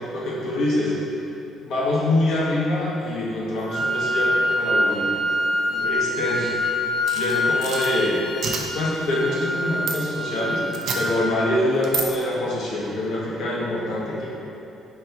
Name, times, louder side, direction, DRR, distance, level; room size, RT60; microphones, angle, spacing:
voice 1, 0.1-0.9 1.6-5.1 5.7-6.5 7.1-8.2 8.7-10.6 10.9-14.3, left 1 dB, 65° left, -6 dB, 1.0 m, -25 dB
Wind instrument woodwind instrument, 3.7-11.7, left 1 dB, 25° left, 0.6 m, -25 dB
sound 1, 7.1-7.9 8.4-8.6 9.9-10.0 10.7-11.0 11.8-12.1, right 5 dB, 60° right, 0.4 m, -28 dB
4.3 x 2.7 x 4.4 m, 2.8 s
cardioid pair, 150°, 0 cm